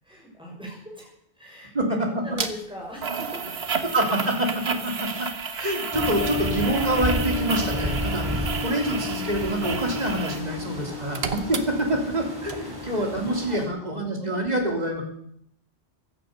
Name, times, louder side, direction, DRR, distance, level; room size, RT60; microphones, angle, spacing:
voice 1, 0.0-3.6 7.7-8.4 10.2-10.5 10.7-11.2 12.5-13.1 13.5-13.6 13.9-14.8, equal, 5° right, -2 dB, 6.4 m, -42 dB
sound 1, 2.4-2.5 3.0-10.5 10.8-12.2 12.5-12.6, right 5 dB, 65° right, 1.4 m, -32 dB
voice 2, 3.8-5.3 5.6-11.2 11.4-15.0, right 1 dB, 40° right, 1 dB, 3.3 m, -26 dB
sound 2, 5.9-13.7, left 2 dB, 20° right, 3.5 m, -31 dB
16.0 x 12.0 x 6.7 m, 0.72 s
omnidirectional pair, 1.1 m